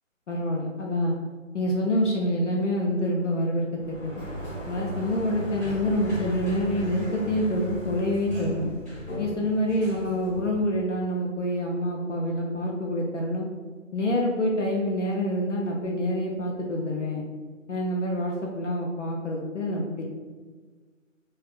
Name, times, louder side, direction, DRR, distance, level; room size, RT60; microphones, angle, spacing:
voice 1, 0.3-1.1 1.5-4.2 4.7-8.7 9.2-13.5 13.9-17.2 17.7-20.1, equal, 65° left, -1 dB, 0.6 m, -27 dB
Sliding door, 3.8-10.9, equal, 10° left, 1.4 m, -37 dB
3.3 x 2.4 x 2.4 m, 1.4 s
figure-of-eight pair, 150°, 39 cm